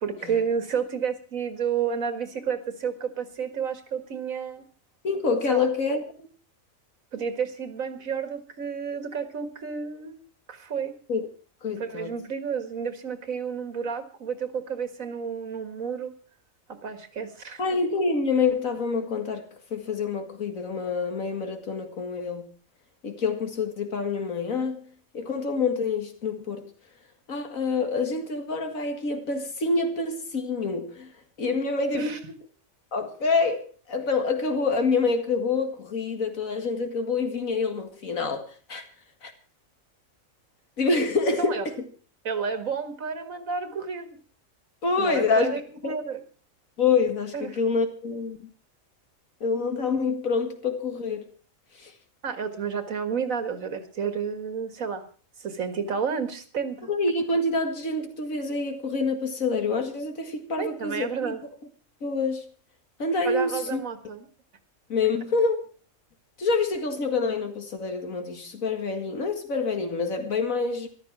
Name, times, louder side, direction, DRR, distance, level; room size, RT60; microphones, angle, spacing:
voice 1, 0.0-4.6 5.5-5.7 7.1-10.2 10.5-10.9 11.8-16.1 16.7-17.6 31.9-32.2 41.4-41.6 42.2-44.1 45.0-46.2 47.3-47.5 52.2-55.0 55.4-56.9 60.6-61.4 63.2-64.3, right 6 dB, 75° right, 2.1 m, -31 dB
voice 2, 5.0-6.3 11.1-11.3 11.6-12.1 17.6-22.5 23.0-24.9 25.1-26.7 27.3-31.1 31.4-32.1 32.9-38.8 39.2-39.3 40.8-41.8 44.8-45.9 46.8-48.4 49.4-51.3 51.7-51.9 56.9-61.4 62.0-62.5 63.0-63.8 64.9-65.6 66.4-70.9, left 4 dB, 75° left, 2.4 m, -27 dB
14.0 x 12.0 x 6.0 m
omnidirectional pair, 1.4 m